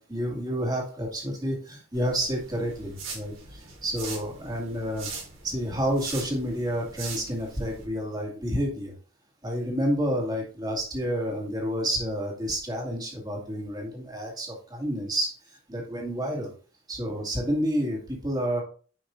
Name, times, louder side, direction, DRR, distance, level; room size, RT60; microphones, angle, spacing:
voice 1, 0.0-5.1 5.4-8.9 9.4-16.5 16.9-18.6, equal, 20° right, -1 dB, 2.4 m, -29 dB
sound 1, 1.9-7.9, right 4 dB, 70° right, 3.6 m, -41 dB
9.8 x 5.8 x 2.6 m, 0.40 s
head